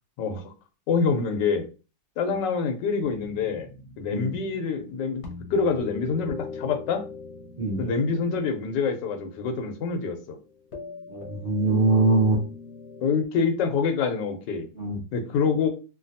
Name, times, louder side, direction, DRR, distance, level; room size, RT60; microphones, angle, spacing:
voice 1, 0.2-0.5 0.9-1.7 2.2-3.7 4.0-5.2 5.5-7.0 7.8-10.4 13.0-14.7 15.1-15.7, left 5 dB, 90° left, 5 dB, 1.3 m, -26 dB
sound 1, 3.0-13.2, left 4 dB, 55° left, 0.9 m, -41 dB
voice 2, 11.1-12.4 14.7-15.0, right 3 dB, 30° right, -5 dB, 1.0 m, -23 dB
3.2 x 2.2 x 2.6 m, 0.32 s
omnidirectional pair, 1.9 m